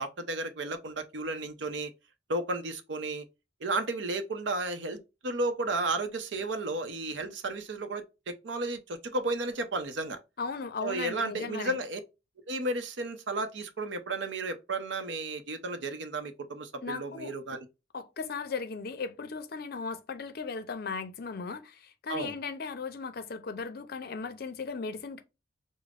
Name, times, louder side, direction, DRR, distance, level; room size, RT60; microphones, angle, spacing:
voice 1, 0.0-1.9 2.3-3.2 3.6-10.2 10.8-12.0 12.5-17.7 22.1-22.3, right 2 dB, 75° right, 0.6 m, -33 dB
voice 2, 10.4-11.8 16.8-17.3 17.9-25.2, left 4 dB, 55° left, 0.5 m, -37 dB
5.1 x 2.0 x 2.4 m
head